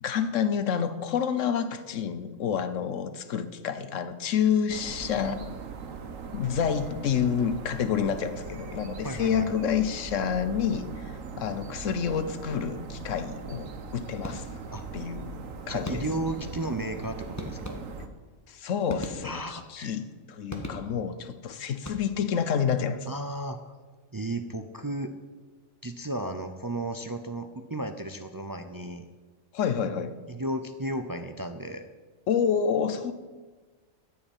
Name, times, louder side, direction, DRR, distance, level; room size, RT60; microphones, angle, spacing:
voice 1, 0.0-5.4 6.3-14.6 14.9-15.2 15.7-16.0 18.5-23.1 29.5-30.2 32.3-33.1, left 7 dB, 75° left, 11 dB, 1.2 m, -28 dB
sound 1, 4.7-18.1, right 4 dB, 85° right, 1.4 m, -40 dB
voice 2, 9.0-9.5 14.7-14.8 15.2-15.3 15.7-17.8 19.2-20.0 23.1-23.7 24.1-25.1 25.8-29.1 30.3-31.8, right 1 dB, 35° right, 7 dB, 0.3 m, -34 dB
sound 2, 14.2-14.8 15.8-16.4 17.4-18.2 18.9-19.7 20.5-21.2 21.7-22.4, left 1 dB, 15° left, 1.3 m, -39 dB
14.0 x 5.7 x 8.8 m, 1.3 s
omnidirectional pair, 1.3 m